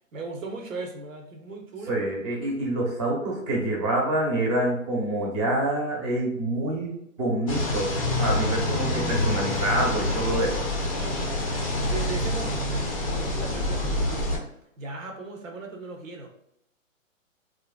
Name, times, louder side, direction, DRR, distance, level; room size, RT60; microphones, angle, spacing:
voice 1, 0.1-2.0 10.3-10.4 10.9-14.5 14.8-16.3, right 3 dB, 70° right, 3 dB, 0.8 m, -37 dB
voice 2, 1.9-10.7, right 1 dB, 25° right, -3 dB, 0.7 m, -27 dB
sound 1, 7.5-14.4, left 1 dB, 25° left, 0.5 m, -27 dB
2.9 x 2.4 x 2.2 m, 0.75 s
hypercardioid pair, 140°, 41 cm